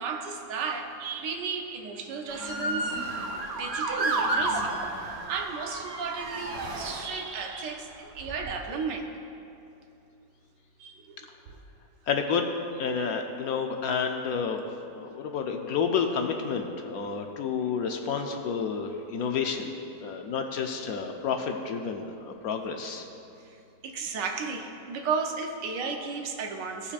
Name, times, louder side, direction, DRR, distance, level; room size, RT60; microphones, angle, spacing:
voice 1, 0.0-2.9 3.5-4.7 5.3-9.1 10.8-11.6 23.4-26.9, right 5 dB, 85° right, 3 dB, 1.5 m, -34 dB
Motor vehicle (road) / Siren, 2.3-7.5 8.2-8.6, right 2 dB, 45° right, 0.9 m, -31 dB
voice 2, 12.1-12.5 12.8-14.6 14.9-19.7 20.0-23.0, left 6 dB, 65° left, 4 dB, 1.0 m, -30 dB
17.0 x 7.0 x 2.4 m, 2.7 s
omnidirectional pair, 1.8 m